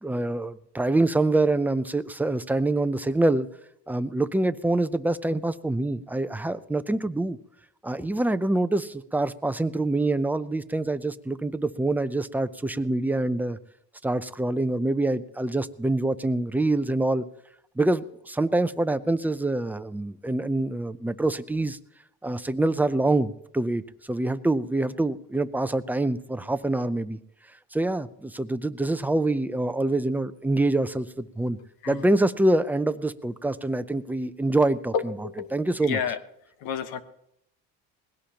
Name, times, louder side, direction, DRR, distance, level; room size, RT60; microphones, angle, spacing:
voice 1, 0.0-3.5 3.9-7.4 7.8-13.6 14.0-17.3 17.8-21.8 22.2-23.8 24.1-27.2 27.7-31.6 31.9-36.0, right 2 dB, 5° right, 12 dB, 0.5 m, -25 dB
voice 2, 34.9-35.5 35.8-36.2 36.6-37.0, left 7 dB, 80° left, 10 dB, 1.3 m, -30 dB
20.5 x 17.0 x 2.9 m, 0.77 s
cardioid pair, 130°, 35 cm